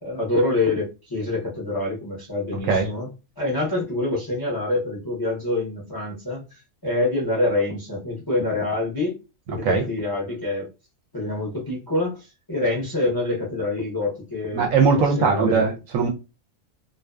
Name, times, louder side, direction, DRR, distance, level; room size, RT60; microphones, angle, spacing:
voice 1, 0.0-3.1 3.4-9.2 9.5-10.7 11.1-15.7, left 2 dB, 25° left, 0.5 m, -26 dB
voice 2, 14.5-16.1, right 5 dB, 70° right, 0.9 m, -20 dB
2.5 x 2.2 x 2.2 m
omnidirectional pair, 1.6 m